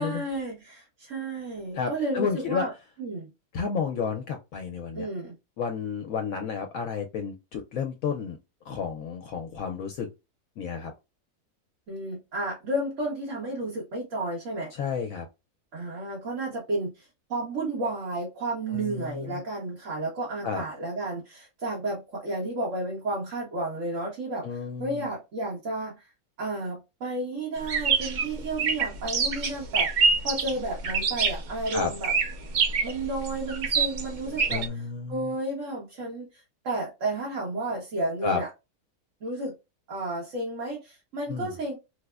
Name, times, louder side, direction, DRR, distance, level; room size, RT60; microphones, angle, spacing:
voice 1, 0.0-2.7 3.0-3.3 4.9-5.4 11.9-14.7 15.7-26.1 26.4-32.1 32.8-34.7 35.1-38.5 39.2-39.5 39.9-41.7, right 2 dB, 60° right, 1.4 m, -32 dB
voice 2, 1.7-2.7 3.5-5.1 5.6-8.4 8.7-10.1 10.6-10.9 14.7-15.3 18.7-19.4 20.4-20.6 24.4-25.0 31.7-31.9 34.5-35.3 38.2-38.4 41.3-41.5, left 6 dB, 75° left, 1.0 m, -31 dB
sound 1, 27.6-34.7, right 5 dB, 80° right, 0.4 m, -26 dB
4.6 x 2.0 x 2.3 m
omnidirectional pair, 1.5 m